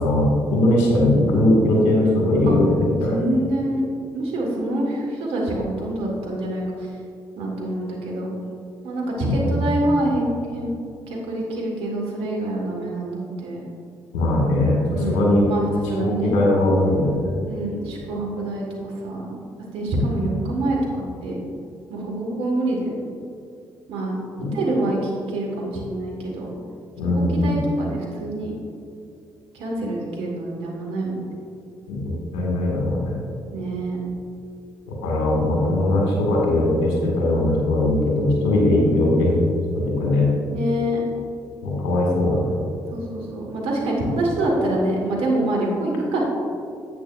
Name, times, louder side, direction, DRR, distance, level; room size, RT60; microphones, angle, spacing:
voice 1, 0.0-3.2 9.3-9.7 14.1-15.5 16.0-17.3 24.4-24.5 27.0-27.6 31.9-33.2 34.9-39.5 39.8-40.3 41.6-42.5, left 1 dB, 80° left, -2 dB, 2.0 m, -20 dB
voice 2, 3.1-3.8 4.1-6.9 7.4-8.3 8.8-10.7 11.1-13.6 14.9-16.3 17.5-19.3 19.7-21.4 21.9-22.9 23.9-24.1 24.5-26.5 27.1-28.5 29.5-31.3 33.5-34.0 40.5-41.0 42.9-46.3, right 1 dB, 70° right, -1 dB, 1.9 m, -26 dB
10.5 x 8.1 x 2.6 m, 2.4 s
hypercardioid pair, 45°, 10 cm